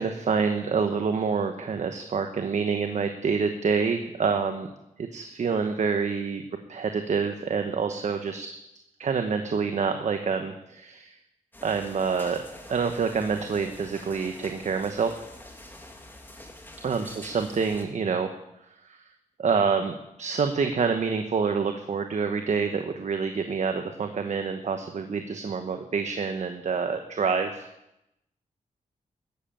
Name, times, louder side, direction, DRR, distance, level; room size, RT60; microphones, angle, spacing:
voice 1, 0.0-4.7 5.0-6.4 6.7-8.5 9.0-11.2 11.6-12.4 12.7-15.2 16.8-18.3 18.8-19.0 19.4-27.7, right 5 dB, 60° right, 6 dB, 1.1 m, -27 dB
sound 1, 11.5-17.9, left 1 dB, 15° left, 2.3 m, -46 dB
13.5 x 7.7 x 8.8 m, 0.88 s
cardioid pair, 80°, 14 cm